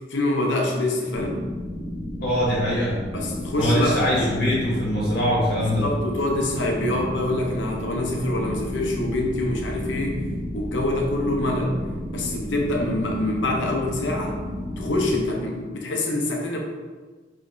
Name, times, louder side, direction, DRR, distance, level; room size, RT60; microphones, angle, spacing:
voice 1, 0.1-1.4 3.1-4.3 5.8-10.2 10.5-11.8 12.1-14.4 14.8-16.6, left 1 dB, 85° left, 0 dB, 0.8 m, -25 dB
sound 1, 1.1-15.2, left 1 dB, 10° right, 0.7 m, -32 dB
voice 2, 2.2-3.0 3.5-5.8, equal, 55° left, -7 dB, 1.2 m, -22 dB
5.0 x 3.2 x 2.7 m, 1.4 s
head